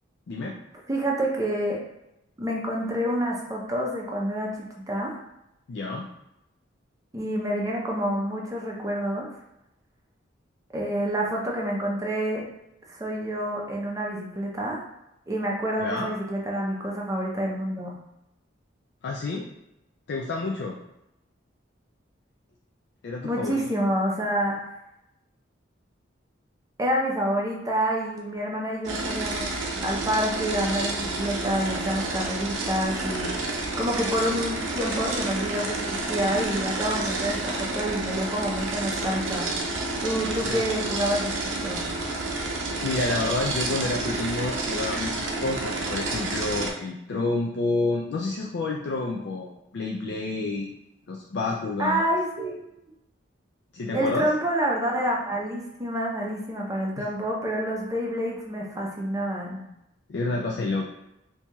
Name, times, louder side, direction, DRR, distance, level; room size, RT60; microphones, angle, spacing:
voice 1, 0.3-0.6 5.7-6.1 15.8-16.1 19.0-19.5 20.1-20.8 23.0-23.6 40.4-40.8 42.8-50.7 51.1-52.0 53.7-54.3 60.1-60.8, left 2 dB, 65° left, -1 dB, 0.4 m, -29 dB
voice 2, 0.9-1.8 2.4-5.2 7.1-9.3 10.7-12.4 12.9-14.8 15.3-18.0 23.2-24.6 26.8-29.6 29.8-33.3 33.8-39.5 40.0-41.8 51.8-52.6 53.9-59.6, equal, 15° right, -1 dB, 0.6 m, -28 dB
sound 1, 28.8-46.7, right 2 dB, 85° right, 0.6 m, -30 dB
4.4 x 2.7 x 2.3 m, 0.86 s
head